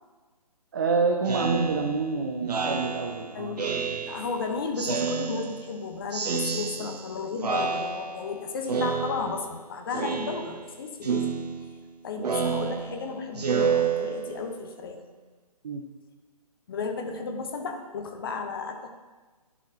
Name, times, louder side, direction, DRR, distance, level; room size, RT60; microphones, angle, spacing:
voice 1, 0.7-4.0 15.6-15.8, right 4 dB, 30° right, 3 dB, 0.4 m, -28 dB
Speech synthesizer, 1.3-4.4 4.8-5.8 6.1-7.1 7.4-8.3 8.7-9.6 9.9-10.7 11.0-14.6, right 5 dB, 80° right, 0.5 m, -29 dB
voice 2, 4.0-11.4 12.0-15.0 16.7-18.9, left 4 dB, 35° left, 4 dB, 0.7 m, -33 dB
11.0 x 4.2 x 2.7 m, 1.3 s
figure-of-eight pair, 140°, 20 cm